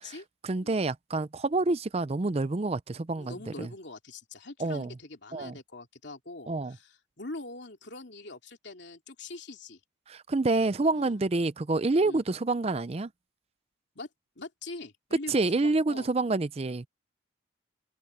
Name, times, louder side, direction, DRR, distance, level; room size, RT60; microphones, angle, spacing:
voice 1, 0.4-3.7 4.6-4.9 5.3-5.6 6.5-6.8 10.1-13.1 15.3-16.9, right 3 dB, 30° right, 0.5 m, -28 dB
voice 2, 3.2-9.8 10.9-11.2 12.0-12.2 13.9-14.1 14.4-16.1, left 2 dB, 60° left, 3.0 m, -43 dB
head